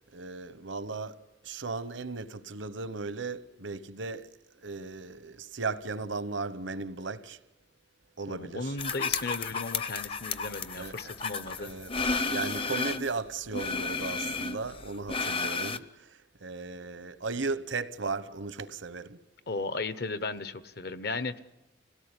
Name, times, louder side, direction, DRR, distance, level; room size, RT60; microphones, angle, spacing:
voice 1, 0.1-1.2 1.4-4.3 4.6-7.4 8.2-8.7 10.8-11.1 11.6-11.9 12.2-19.2, right 4 dB, 80° right, 1.0 m, -36 dB
voice 2, 8.3-11.7 19.5-21.4, left 3 dB, 55° left, 1.0 m, -35 dB
sound 1, 8.8-13.1 13.5-15.8, left 4 dB, 30° left, 0.7 m, -32 dB
26.0 x 17.5 x 9.8 m
head